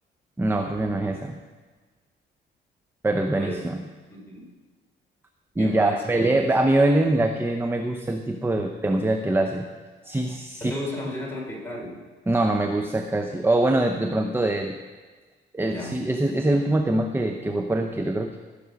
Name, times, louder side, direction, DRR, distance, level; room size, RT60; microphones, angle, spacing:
voice 1, 0.4-1.4 3.0-3.8 5.6-9.7 10.0-10.7 12.3-14.8 15.5-18.4, right 2 dB, 10° right, 5 dB, 0.7 m, -23 dB
voice 2, 3.4-3.7 4.1-4.5 5.6-6.4 10.6-12.0 15.7-16.0, left 1 dB, 10° left, -3 dB, 4.1 m, -34 dB
16.5 x 6.9 x 5.3 m, 1.4 s
cardioid pair, 90°, 20 cm